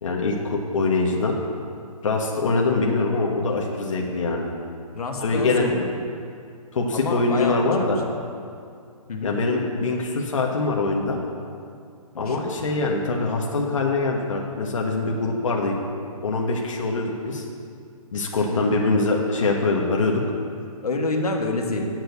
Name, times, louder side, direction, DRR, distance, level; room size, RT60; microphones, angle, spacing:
voice 1, 0.0-1.3 2.0-4.5 5.2-5.7 6.7-8.0 9.2-11.2 12.2-15.7 16.2-17.4 18.1-20.2, left 3 dB, 60° left, -1 dB, 1.4 m, -23 dB
voice 2, 4.9-5.9 6.9-7.7 9.1-9.3 12.1-12.6 18.4-19.0 20.8-21.9, left 2 dB, 90° left, 1 dB, 1.7 m, -28 dB
7.8 x 7.1 x 8.0 m, 2.4 s
hypercardioid pair, 170°, 19 cm